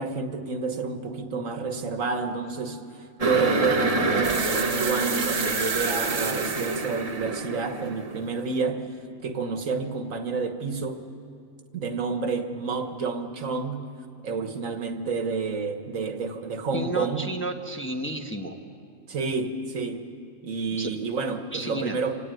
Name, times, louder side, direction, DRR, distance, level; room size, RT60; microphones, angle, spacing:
voice 1, 0.0-2.8 3.2-8.8 9.2-11.0 11.7-13.9 14.2-17.3 19.1-20.1 20.4-22.1, right 4 dB, 75° right, 7 dB, 1.7 m, -29 dB
sound 1, 3.2-8.5, right 3 dB, 30° right, 0.9 m, -27 dB
sound 2, 4.2-7.0, right 5 dB, 50° right, 1.3 m, -32 dB
voice 2, 16.7-18.6 20.7-20.9 21.5-22.0, right 1 dB, 10° left, 2 dB, 1.2 m, -32 dB
26.5 x 17.5 x 9.3 m, 2.4 s
omnidirectional pair, 1.4 m